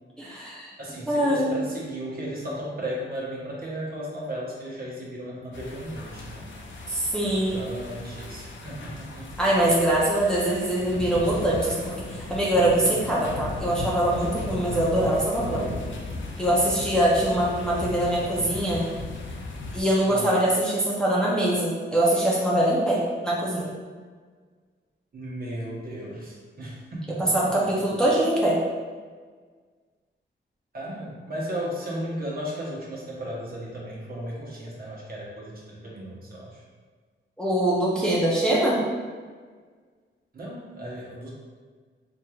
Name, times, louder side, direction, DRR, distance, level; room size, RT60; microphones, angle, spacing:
voice 1, 0.2-0.7 1.1-1.5 6.9-7.6 9.4-15.7 16.4-18.9 19.7-23.7 27.2-28.6 37.4-38.8, right 1 dB, 5° left, -6 dB, 0.6 m, -23 dB
voice 2, 0.8-6.5 7.3-9.4 20.1-20.3 25.1-27.5 30.7-36.6 40.3-41.3, equal, 50° right, -5 dB, 1.0 m, -35 dB
sound 1, 5.5-19.8, left 2 dB, 75° left, 0.6 m, -37 dB
4.4 x 3.2 x 2.3 m, 1.6 s
wide cardioid pair, 130°, 20 cm